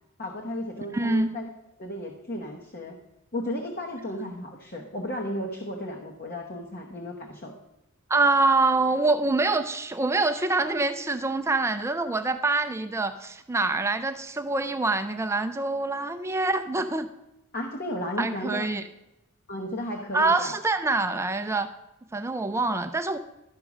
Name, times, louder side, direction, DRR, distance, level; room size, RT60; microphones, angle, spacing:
voice 1, 0.2-1.5 1.8-3.0 3.3-7.5 17.5-18.7 19.5-20.5, left 1 dB, 45° left, 1 dB, 1.0 m, -34 dB
voice 2, 0.9-1.3 8.1-17.1 18.2-18.8 20.1-21.7 22.1-23.2, right 3 dB, 15° right, 9 dB, 0.4 m, -25 dB
12.5 x 5.2 x 6.0 m, 0.94 s
head